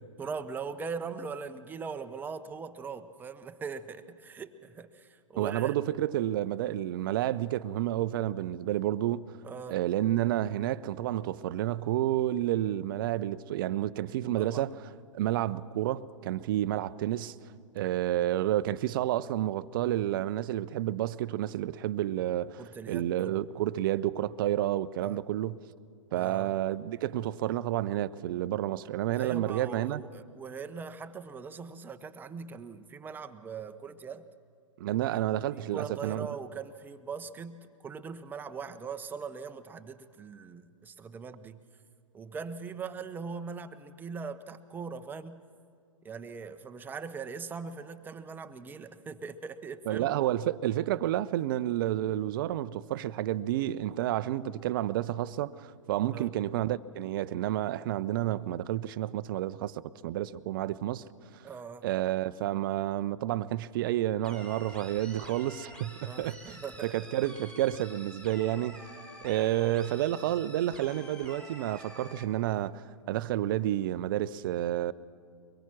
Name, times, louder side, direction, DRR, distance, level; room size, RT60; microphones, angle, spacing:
voice 1, 0.2-5.7 9.4-9.8 14.4-14.6 22.6-23.4 25.0-25.2 26.1-26.5 29.1-34.3 35.5-41.6 42.1-45.4 46.0-50.1 56.1-56.3 61.4-61.9 66.0-66.9, right 5 dB, 10° right, 0.8 m, -41 dB
voice 2, 5.4-9.4 9.7-14.8 15.1-17.3 17.7-22.6 22.9-25.5 26.1-30.0 34.8-36.3 49.9-61.0 61.3-61.5 61.8-66.6 66.8-68.8 69.2-74.9, right 13 dB, 40° right, 0.6 m, -30 dB
sound 1, 64.2-72.2, equal, 5° left, 2.4 m, -48 dB
24.0 x 22.0 x 6.1 m
figure-of-eight pair, 115°, 17 cm